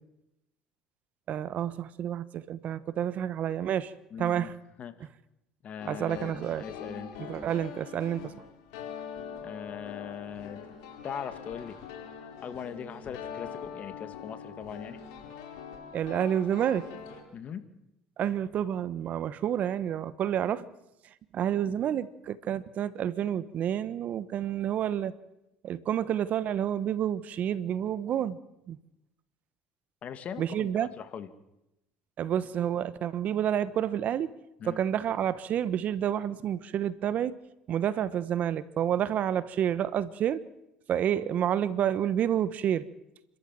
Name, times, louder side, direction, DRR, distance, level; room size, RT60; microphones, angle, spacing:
voice 1, 1.3-3.9 4.2-4.5 5.8-6.6 7.2-8.3 15.9-16.9 18.2-20.7 21.3-25.2 25.6-28.4 28.7-28.8 30.4-30.9 32.2-34.3 34.6-37.4 37.7-40.4 40.9-42.8, right 10 dB, 50° right, 16 dB, 1.2 m, -29 dB
voice 2, 4.1-4.5 4.8-5.1 5.6-7.1 9.4-10.6 11.0-11.8 12.4-15.0 17.3-17.6 30.0-31.3 34.6-34.8, left 8 dB, 45° left, 10 dB, 2.2 m, -40 dB
sound 1, 5.8-17.2, left 7 dB, 80° left, 4.4 m, -43 dB
29.0 x 13.5 x 7.7 m, 0.88 s
supercardioid pair, 85°, 3 cm